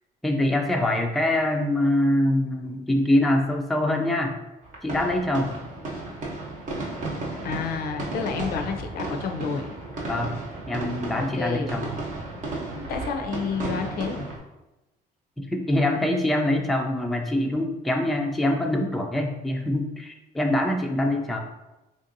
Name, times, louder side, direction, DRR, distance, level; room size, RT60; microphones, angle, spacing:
voice 1, 0.2-4.4 4.8-5.5 10.1-10.3 10.7-11.9 15.4-21.4, left 1 dB, ahead, 1 dB, 0.3 m, -24 dB
sound 1, 4.6-14.4, right 2 dB, 50° right, 0.9 m, -34 dB
voice 2, 7.4-9.7 11.2-11.7 12.7-14.2, left 6 dB, 65° left, 5 dB, 0.4 m, -30 dB
3.5 x 2.6 x 2.6 m, 1.0 s
cardioid pair, 110°, 17 cm